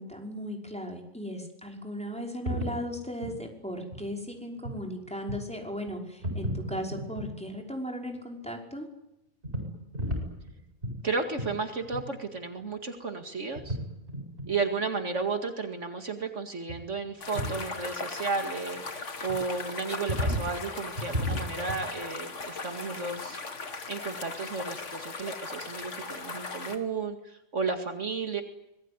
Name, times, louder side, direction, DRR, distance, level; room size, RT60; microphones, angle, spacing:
voice 1, 0.0-8.9, equal, 5° left, 1 dB, 5.6 m, -37 dB
sound 1, 2.5-2.8 3.2-3.4 3.9-4.1 4.6-4.8 5.3-5.5 5.8-5.9 6.2-7.3 9.4-10.5 10.8-11.0 11.4-11.5 11.8-12.0 12.3-12.4 12.6-12.7 13.5-13.8 14.1-14.5 16.7-16.8 17.1-17.6 19.3-19.4 20.1-20.5 20.9-21.8, equal, 40° right, 8.3 m, -33 dB
voice 2, 11.0-13.8 14.5-23.4 23.9-28.4, right 4 dB, 60° right, 6 dB, 2.4 m, -33 dB
sound 2, 17.2-26.8, left 4 dB, 60° left, 2.5 m, -38 dB
25.5 x 20.5 x 9.8 m, 0.87 s
omnidirectional pair, 1.4 m